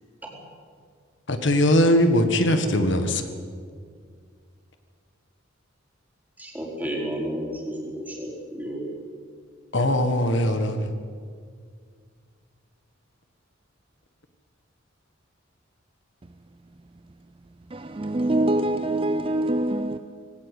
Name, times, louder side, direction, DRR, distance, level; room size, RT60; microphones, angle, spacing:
voice 1, 1.3-3.2 9.7-10.8, left 1 dB, 65° left, 1.6 m, -20 dB
voice 2, 6.4-8.9, equal, 10° right, 4.6 m, -32 dB
voice 3, 17.7-20.0, right 1 dB, 25° right, 0.6 m, -24 dB
19.5 x 17.5 x 8.4 m
head